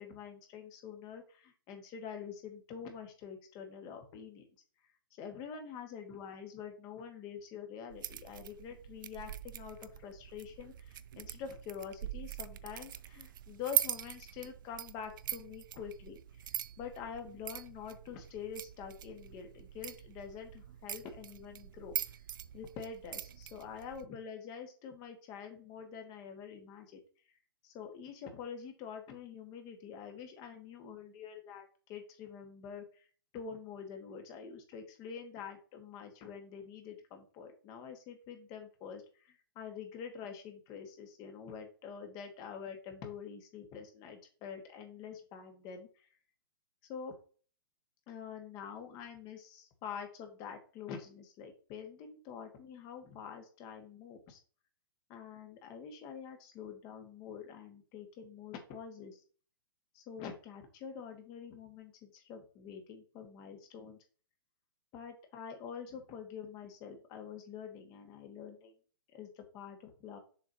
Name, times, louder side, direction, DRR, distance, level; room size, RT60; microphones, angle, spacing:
voice 1, 0.0-4.5 5.2-16.2 16.8-21.9 22.5-26.9 27.6-33.0 33.3-46.1 46.9-47.1 48.1-54.4 55.1-59.2 59.9-64.0 64.9-68.7 69.1-70.2, left 7 dB, 35° left, 4 dB, 1.8 m, -46 dB
sound 1, 7.9-24.1, right 11 dB, 60° right, 0.4 m, -42 dB
7.0 x 5.2 x 2.9 m, 0.40 s
hypercardioid pair, 125°, 12 cm